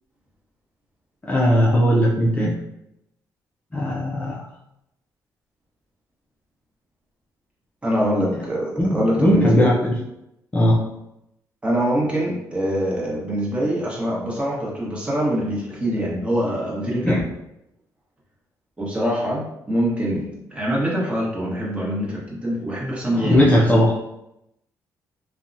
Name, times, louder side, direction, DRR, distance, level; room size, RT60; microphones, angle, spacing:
voice 1, 1.2-2.5 3.7-4.4 8.3-8.4 8.8-10.0 10.5-10.8 17.0-17.2 23.1-23.9, equal, 20° left, -5 dB, 0.5 m, -18 dB
voice 2, 7.8-9.8 11.6-17.2 18.8-23.5, equal, 15° right, -5 dB, 1.1 m, -24 dB
2.7 x 2.2 x 2.5 m, 0.84 s
cardioid pair, 90°, 7 cm